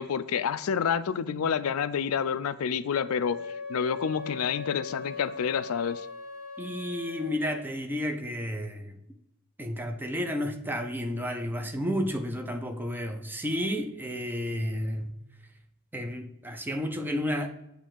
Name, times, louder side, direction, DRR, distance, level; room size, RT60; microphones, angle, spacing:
voice 1, 0.0-6.1, left 7 dB, 85° left, 0.4 m, -29 dB
Wind instrument woodwind instrument, 2.9-7.4, left 4 dB, 90° right, 2.0 m, -40 dB
voice 2, 6.6-9.0 9.6-15.2 15.9-17.5, equal, 10° right, 0.7 m, -31 dB
8.4 x 3.3 x 6.3 m
head